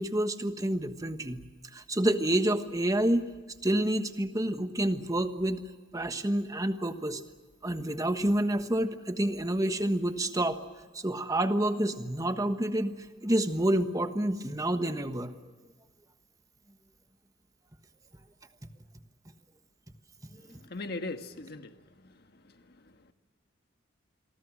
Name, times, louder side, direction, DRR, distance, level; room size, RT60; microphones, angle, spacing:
voice 1, 0.0-1.5 1.7-3.3 3.6-5.6 5.9-7.2 7.6-10.6 10.9-15.3 20.5-20.6, right 1 dB, 15° right, 8 dB, 1.4 m, -28 dB
voice 2, 20.7-21.7, left 2 dB, 50° left, 7 dB, 1.5 m, -37 dB
27.5 x 23.5 x 6.3 m, 1.3 s
head